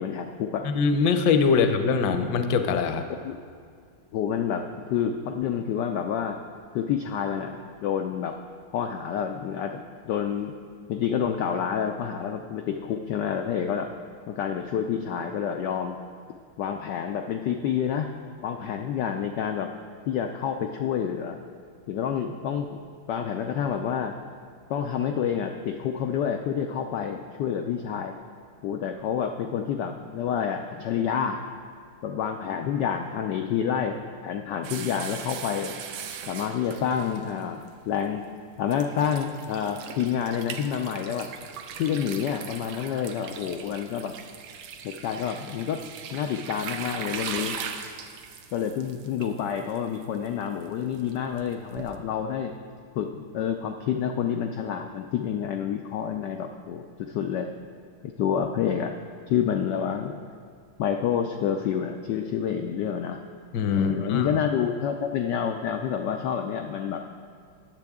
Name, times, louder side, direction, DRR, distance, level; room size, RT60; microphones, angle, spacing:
voice 1, 0.0-0.7 1.5-1.6 3.2-3.3 4.1-6.4 6.7-8.4 8.7-9.8 10.1-10.5 10.9-13.9 14.3-16.0 16.6-18.1 18.4-19.7 20.1-21.4 21.9-22.8 23.1-24.2 24.7-28.1 28.6-31.4 32.0-34.0 34.2-35.8 36.3-37.6 37.9-38.2 38.6-41.3 41.8-44.1 44.8-45.8 46.1-47.6 48.5-52.5 52.9-57.5 58.0-58.9 59.3-60.2 60.8-63.2 63.7-67.0, left 8 dB, 85° left, 5 dB, 0.9 m, -28 dB
voice 2, 0.6-3.1 63.5-64.3, left 5 dB, 65° left, 7 dB, 1.2 m, -23 dB
sound 1, 34.6-37.7 38.3-38.4 38.7-52.0, right 7 dB, 85° right, 1.7 m, -39 dB
19.5 x 7.6 x 3.6 m, 2.1 s
omnidirectional pair, 2.4 m